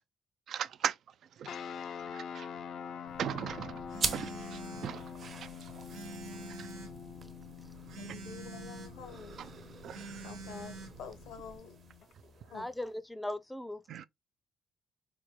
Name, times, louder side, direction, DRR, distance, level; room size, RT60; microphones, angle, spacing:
voice 1, 0.5-1.0 1.4-1.5 2.1-2.5 3.2-3.8 4.1-5.5 6.6-6.7 9.8-10.3 13.9-14.1, right 9 dB, 70° right, 0.4 m, -38 dB
sound 1, 1.4-12.1, left 7 dB, 70° left, 0.5 m, -46 dB
Telephone, 3.1-11.6, right 3 dB, 85° right, 1.0 m, -48 dB
sound 2, 3.9-12.9, right 5 dB, 50° right, 1.0 m, -44 dB
voice 2, 7.9-9.4 10.2-10.7 11.0-11.8 12.2-12.7, left 6 dB, 90° left, 1.2 m, -48 dB
voice 3, 12.5-13.8, left 1 dB, 10° left, 0.5 m, -38 dB
5.0 x 2.2 x 3.1 m
cardioid pair, 90°, 0 cm